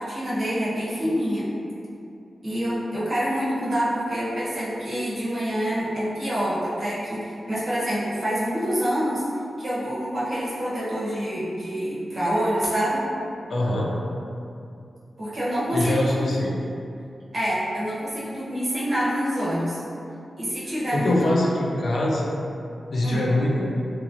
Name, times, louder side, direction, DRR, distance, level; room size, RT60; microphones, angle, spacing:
voice 1, 0.0-1.5 2.4-9.2 9.6-13.0 15.2-16.4 17.3-19.8 20.4-21.3 23.0-23.3, equal, 55° right, -10 dB, 0.9 m, -26 dB
voice 2, 13.5-13.9 15.7-16.5 20.9-22.3 22.9-23.7, left 1 dB, 70° left, -3 dB, 0.5 m, -23 dB
2.9 x 2.3 x 2.6 m, 2.6 s
wide cardioid pair, 80°, 0 cm